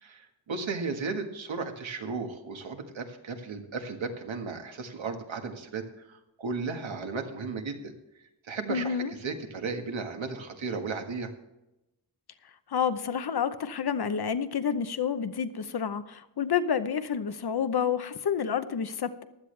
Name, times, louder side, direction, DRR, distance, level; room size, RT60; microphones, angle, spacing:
voice 1, 0.0-7.9 8.5-11.3, right 4 dB, 75° right, 5 dB, 1.7 m, -35 dB
voice 2, 8.7-9.1 12.7-19.2, left 7 dB, 55° left, 12 dB, 0.8 m, -29 dB
15.5 x 11.5 x 3.3 m, 0.94 s
wide cardioid pair, 175°, 46 cm